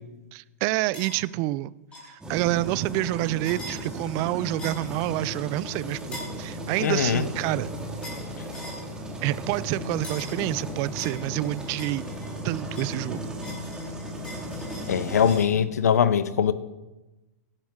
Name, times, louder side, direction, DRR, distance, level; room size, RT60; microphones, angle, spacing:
voice 1, 0.3-1.7 2.0-7.7 9.2-12.1 12.4-13.3, right 18 dB, 40° right, 0.4 m, -28 dB
sound 1, 0.9-1.2 1.9-2.1 3.4-3.8 4.6-4.9 6.1-6.4 8.0-8.3 8.5-8.8 10.0-10.4 11.0-12.4 12.8-15.5, equal, 15° left, 5.0 m, -42 dB
sound 2, 2.2-15.4, equal, 10° right, 2.0 m, -36 dB
voice 2, 6.8-7.2 14.9-16.5, left 8 dB, 90° left, 0.7 m, -22 dB
16.5 x 10.5 x 3.7 m
hypercardioid pair, 130°, 8 cm